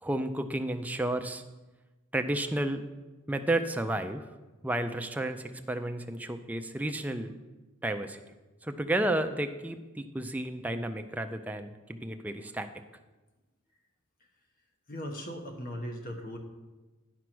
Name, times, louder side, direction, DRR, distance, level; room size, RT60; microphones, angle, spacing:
voice 1, 0.0-1.4 2.1-2.8 3.3-4.3 4.6-7.3 7.8-8.2 8.6-12.7, right 1 dB, 5° right, 7 dB, 0.4 m, -32 dB
voice 2, 14.9-16.4, equal, 45° left, 3 dB, 1.2 m, -38 dB
10.0 x 4.7 x 6.1 m, 1.2 s
head